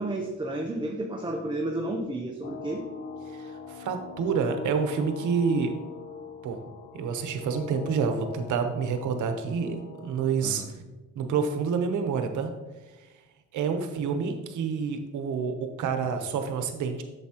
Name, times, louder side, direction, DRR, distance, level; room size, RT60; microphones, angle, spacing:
voice 1, 0.0-2.8 10.4-10.7, right 1 dB, 15° right, 1 dB, 0.8 m, -31 dB
sound 1, 2.4-10.6, left 5 dB, 35° left, 0.9 m, -42 dB
voice 2, 3.3-5.8 6.4-6.6 6.9-10.6 11.1-12.5 13.5-17.0, right 6 dB, 75° right, 6 dB, 1.0 m, -28 dB
8.2 x 7.0 x 2.9 m, 1.2 s
cardioid pair, 90°, 30 cm